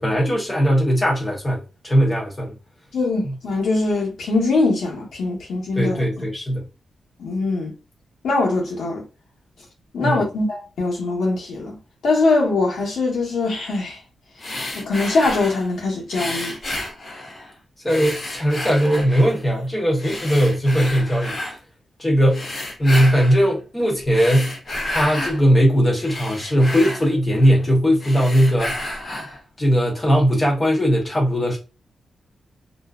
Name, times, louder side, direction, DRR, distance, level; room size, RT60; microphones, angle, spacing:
voice 1, 0.0-2.5 3.2-3.3 5.8-6.6 10.0-10.2 17.8-21.4 22.0-22.4 22.8-24.5 24.9-28.7 29.6-31.6, equal, 15° left, 0.9 m, -19 dB
voice 2, 2.9-6.1 7.2-7.7 8.2-9.0 9.9-11.8 12.0-14.0 14.7-16.6, left 3 dB, 85° left, 1.0 m, -22 dB
sound 1, 14.4-15.7 16.1-17.5 17.9-19.4 20.0-21.6 22.3-23.4 24.0-25.4 25.8-27.6 28.0-29.4, left 1 dB, 35° left, 0.6 m, -31 dB
2.5 x 2.1 x 2.3 m
wide cardioid pair, 160°, 0 cm